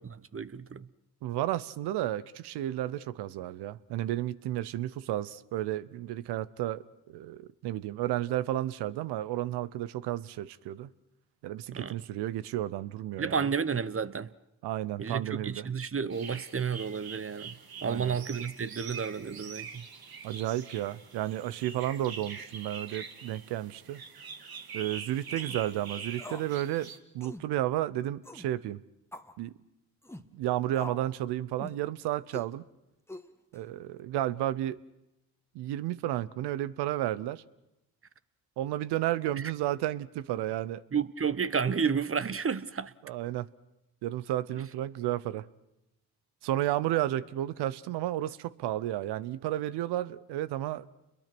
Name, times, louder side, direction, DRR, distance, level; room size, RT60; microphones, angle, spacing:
voice 1, 0.3-0.9 11.7-11.9 13.2-14.3 15.0-17.6 17.8-19.8 40.9-42.9, right 6 dB, 35° right, 1.0 m, -31 dB
voice 2, 1.2-10.9 11.4-13.4 14.6-15.7 17.8-18.2 20.2-24.0 24.7-26.9 27.1-28.8 29.4-29.5 30.3-32.6 33.5-34.8 35.5-37.4 38.6-40.8 43.0-43.5 44.0-45.5 46.4-50.9, right 13 dB, 85° right, 0.8 m, -32 dB
sound 1, 16.1-27.0, right 6 dB, 65° right, 2.2 m, -44 dB
sound 2, 25.3-25.6 26.2-26.5 26.8-26.9 27.2-27.5 28.2-28.5 29.1-29.4 30.0-30.3 30.7-31.1 31.6-31.8 32.3-32.5 33.1-33.6, left 1 dB, 5° left, 1.5 m, -44 dB
29.5 x 22.0 x 6.1 m
supercardioid pair, 50°, 39 cm